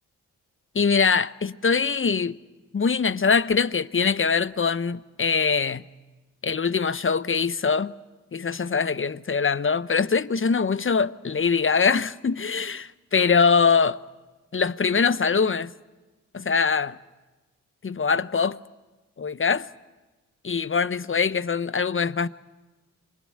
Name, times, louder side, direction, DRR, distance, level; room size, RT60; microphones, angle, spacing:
voice 1, 0.7-2.3 2.7-5.8 6.4-7.9 8.3-14.0 14.5-15.7 16.3-17.0 17.8-18.6 19.2-19.7 20.4-22.3, left 5 dB, 30° left, 1.0 m, -23 dB
26.5 x 21.5 x 8.8 m
hypercardioid pair, 40°, 40 cm